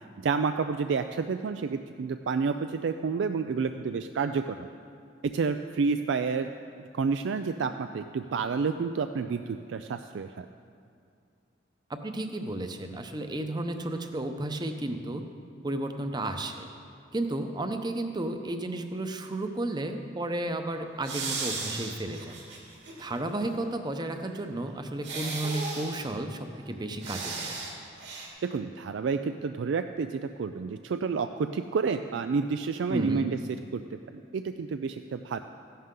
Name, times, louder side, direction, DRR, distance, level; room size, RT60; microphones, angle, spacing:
voice 1, 0.2-4.6 5.2-6.5 7.0-10.5 28.4-31.3 31.5-33.4 33.7-33.8 34.3-35.4, right 5 dB, 90° right, 8 dB, 0.4 m, -29 dB
voice 2, 11.9-15.2 15.6-16.7 17.1-22.4 23.0-27.5 32.9-33.3, right 1 dB, 25° right, 6 dB, 0.7 m, -33 dB
sound 1, 21.0-23.1 23.4-23.5 25.0-26.1 27.0-27.7 28.0-28.3, right 3 dB, 70° right, 2.5 m, -35 dB
15.0 x 11.0 x 3.8 m, 2.4 s
head